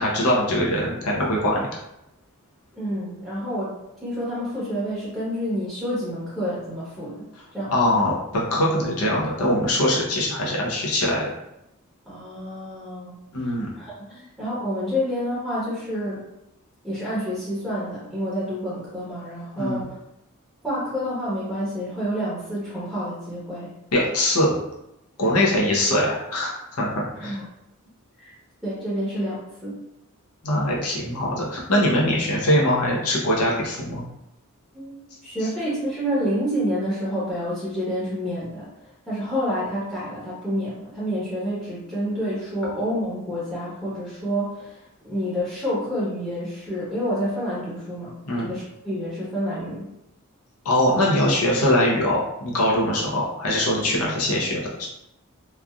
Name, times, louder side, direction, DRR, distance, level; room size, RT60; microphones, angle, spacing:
voice 1, 0.0-1.7 7.7-11.3 13.3-13.7 19.6-19.9 23.9-24.5 25.2-27.3 30.4-34.0 48.2-48.5 50.6-54.9, left 1 dB, 90° left, -4 dB, 0.8 m, -22 dB
voice 2, 2.7-8.0 12.1-16.2 16.8-19.9 20.6-23.7 25.2-25.4 27.2-27.4 28.2-28.3 28.6-29.8 34.7-48.1 48.4-49.9, equal, 5° right, -10 dB, 0.9 m, -29 dB
3.2 x 2.5 x 2.3 m, 0.86 s
head